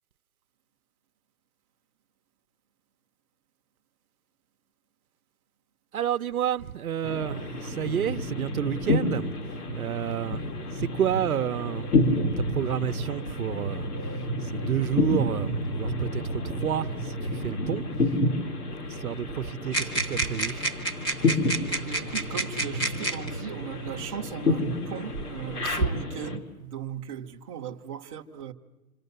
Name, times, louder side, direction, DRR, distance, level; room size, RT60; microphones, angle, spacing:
voice 1, 5.9-9.3 9.7-10.5 10.7-13.8 14.4-17.8 18.9-20.7, right 10 dB, 70° right, 0.9 m, -30 dB
sound 1, 7.0-26.4, left 2 dB, 80° left, 3.7 m, -30 dB
sound 2, 19.7-23.3 24.3-24.4 25.1-25.9, right 2 dB, 10° left, 1.2 m, -30 dB
voice 2, 21.7-28.5, right 8 dB, 25° right, 0.9 m, -37 dB
27.0 x 26.5 x 6.8 m
hypercardioid pair, 165°, 45 cm